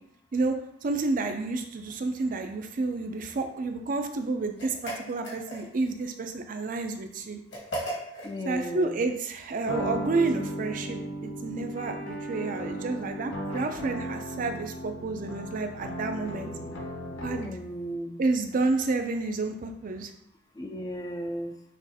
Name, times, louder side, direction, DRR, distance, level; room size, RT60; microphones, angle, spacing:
voice 1, 0.3-7.4 8.4-16.5 17.2-17.5 18.2-20.1, right 3 dB, 45° right, 6 dB, 0.4 m, -30 dB
sound 1, 4.6-5.9 7.5-8.3, right 1 dB, 60° left, 1.5 m, -36 dB
voice 2, 8.2-9.0 17.4-18.2 20.5-21.6, equal, 20° left, 4 dB, 0.4 m, -35 dB
sound 2, 9.6-17.7, equal, 85° left, 0.6 m, -36 dB
6.0 x 2.5 x 2.7 m, 0.74 s
head